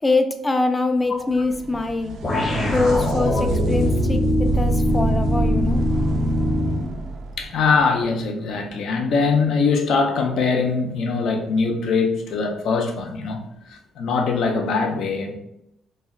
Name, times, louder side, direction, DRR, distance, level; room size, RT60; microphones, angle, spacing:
voice 1, 0.0-2.2 2.7-5.8, left 3 dB, 20° left, 0.4 m, -23 dB
sound 1, 1.0-8.6 12.0-12.1 13.1-13.2, right 2 dB, 75° right, 0.4 m, -27 dB
sound 2, 2.2-7.0, left 1 dB, 35° left, 0.8 m, -22 dB
voice 2, 7.4-13.4 13.7-15.3, left 4 dB, 75° left, 0.5 m, -22 dB
2.4 x 2.1 x 3.6 m
cardioid pair, 90°, 0 cm